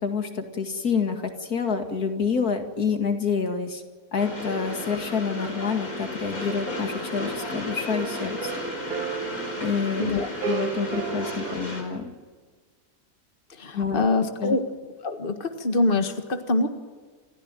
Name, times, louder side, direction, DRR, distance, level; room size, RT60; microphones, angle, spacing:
voice 1, 0.0-3.8 4.1-8.5 9.6-12.1 13.7-14.1 14.4-14.6, left 5 dB, 85° left, 5 dB, 2.7 m, -28 dB
Train, 4.2-11.8, left 2 dB, 70° left, 5.4 m, -34 dB
sound 1, 6.4-11.6, right 9 dB, 85° right, 1.7 m, -35 dB
voice 2, 13.6-14.6 15.0-16.7, left 2 dB, 35° left, 6 dB, 1.9 m, -24 dB
28.5 x 15.0 x 9.0 m, 1.5 s
omnidirectional pair, 1.6 m